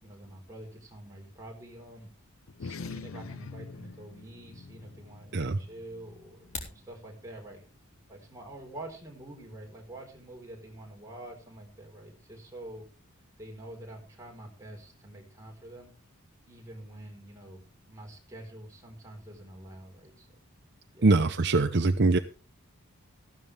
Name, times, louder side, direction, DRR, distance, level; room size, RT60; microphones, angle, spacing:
voice 1, 0.0-2.1 2.6-7.6 8.1-12.8 13.4-15.9 16.5-20.3 20.9-21.1, right 1 dB, 15° right, 0 dB, 4.3 m, -46 dB
sound 1, 2.5-7.3, left 4 dB, 65° left, 0.6 m, -45 dB
sound 2, 6.3-6.8, left 3 dB, 30° left, 3.6 m, -40 dB
voice 2, 21.0-22.2, right 3 dB, 50° right, 9 dB, 0.7 m, -23 dB
15.0 x 12.5 x 3.4 m, 0.35 s
head